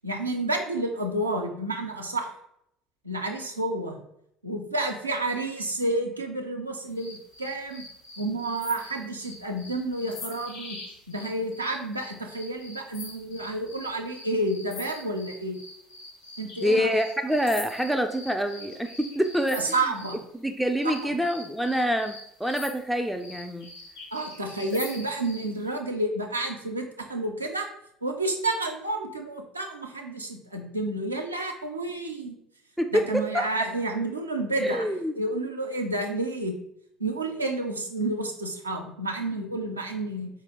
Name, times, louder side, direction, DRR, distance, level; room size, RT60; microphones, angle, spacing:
voice 1, 0.0-2.3 3.0-4.0 4.4-7.8 8.2-10.8 11.1-15.6 16.4-16.9 19.5-20.2 24.1-27.7 28.0-32.4 32.9-34.9 35.2-36.6 37.0-40.3, right 2 dB, 90° right, 2 dB, 0.4 m, -30 dB
sound 1, 7.0-20.2 20.8-25.5, left 2 dB, 70° left, 1.0 m, -44 dB
voice 2, 16.6-19.8 20.4-23.7 24.7-24.8 32.8-33.5 34.6-35.2, equal, ahead, 5 dB, 0.3 m, -26 dB
4.3 x 2.5 x 2.8 m, 0.74 s
figure-of-eight pair, 60°, 0 cm